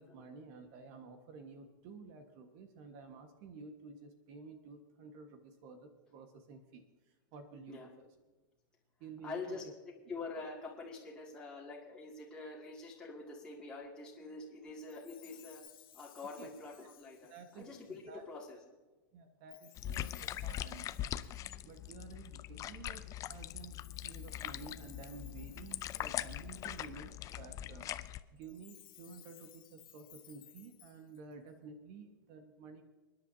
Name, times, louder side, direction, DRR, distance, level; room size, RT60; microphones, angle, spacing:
voice 1, 0.0-6.8 7.3-8.1 9.0-9.6 16.4-16.5 17.3-18.2 19.1-21.1 21.6-23.7 24.0-27.9 28.3-32.8, right 4 dB, 50° right, 6 dB, 1.5 m, -52 dB
voice 2, 9.2-9.6 10.1-15.6 15.9-18.6, left 3 dB, 5° left, -5 dB, 2.4 m, -46 dB
Chime, 14.8-18.1 19.5-22.3 23.3-27.1 28.4-31.5, left 13 dB, 70° left, 1.1 m, -60 dB
sound 1, 19.8-28.2, left 12 dB, 25° left, 0.5 m, -42 dB
30.0 x 10.0 x 2.8 m, 1.2 s
hypercardioid pair, 135°, 12 cm